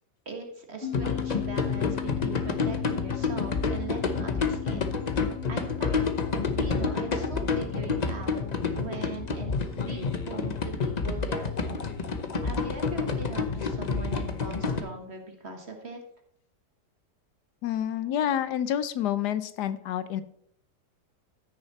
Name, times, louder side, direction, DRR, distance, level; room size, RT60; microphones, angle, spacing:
voice 1, 0.3-5.0 5.5-6.0 6.6-8.4 8.8-11.8 12.4-16.0, right 4 dB, 40° right, 4 dB, 1.7 m, -40 dB
sound 1, 0.8-13.6, left 11 dB, 15° left, 1.7 m, -41 dB
sound 2, 0.9-14.8, left 4 dB, 35° left, 0.7 m, -29 dB
voice 2, 17.6-20.2, left 10 dB, 80° left, 14 dB, 1.2 m, -28 dB
14.0 x 6.6 x 4.2 m, 0.69 s
omnidirectional pair, 1.8 m